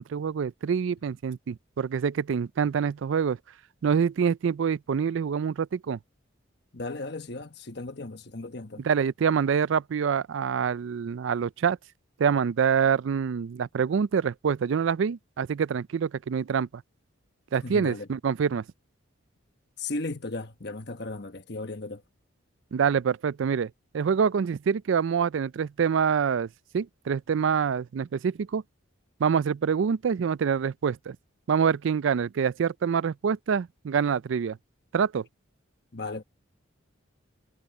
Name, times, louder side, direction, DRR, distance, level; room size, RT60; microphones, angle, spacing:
voice 1, 0.0-3.4 3.8-6.0 8.8-11.8 12.2-16.7 17.5-18.6 22.7-26.5 26.7-28.6 29.2-31.2 31.5-34.6 34.9-35.3, right 6 dB, 65° right, 0.4 m, -26 dB
voice 2, 6.7-8.8 17.6-18.1 19.8-22.0 35.9-36.2, left 2 dB, 55° left, 1.2 m, -36 dB
head